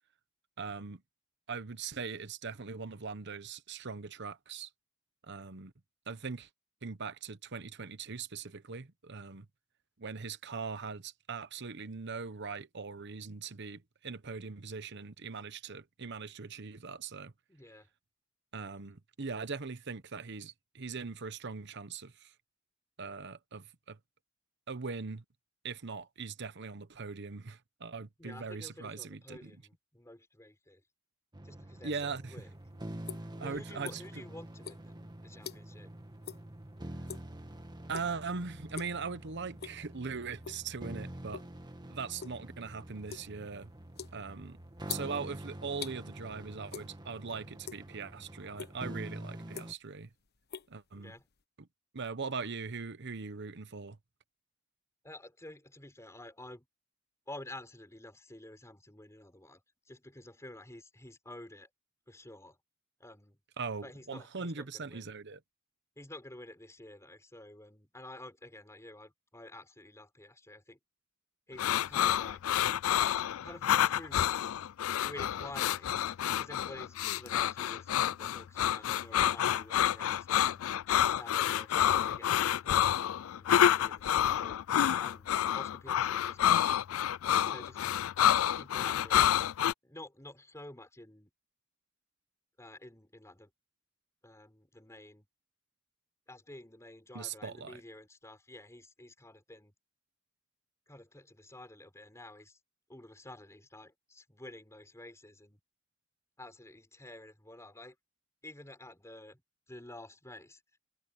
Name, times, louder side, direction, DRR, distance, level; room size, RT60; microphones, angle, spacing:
voice 1, 0.6-1.0 1.5-4.7 5.3-5.7 6.1-6.5 6.8-9.4 10.0-17.3 18.5-22.3 23.0-24.0 24.7-25.2 25.6-29.5 31.8-32.3 33.4-34.2 37.9-41.4 41.9-43.7 44.1-44.6 44.9-50.1 50.7-51.1 51.6-51.7 51.9-54.0 63.6-65.4 97.1-97.8, right 5 dB, 55° right, 1.0 m, -40 dB
voice 2, 17.5-17.9 28.2-30.8 31.4-32.5 33.4-34.9 35.2-35.9 50.9-51.3 55.0-56.7 57.3-59.6 59.9-61.7 62.1-62.6 63.0-63.4 63.8-65.1 66.0-70.8 71.5-72.6 73.4-74.2 75.0-75.9 76.4-80.6 81.2-86.8 87.4-87.8 88.4-89.2 89.8-91.3 92.6-93.5 94.2-95.3 96.3-99.7 100.9-102.6 102.9-105.6 106.4-108.0 108.4-109.4 109.7-110.6, left 1 dB, 15° left, 4.4 m, -50 dB
sound 1, 31.3-49.7, right 1 dB, 20° right, 1.7 m, -46 dB
sound 2, 32.4-34.3 34.6-35.9 36.2-36.5 36.8-37.4 37.9-38.3 38.6-39.0 39.4-40.0 40.4-41.6 41.9-46.0 46.7-47.3 47.5-48.1 48.6-48.7 49.3-50.0 50.3-51.4, left 8 dB, 50° left, 1.2 m, -45 dB
sound 3, 71.6-89.7, left 10 dB, 80° left, 0.3 m, -28 dB
head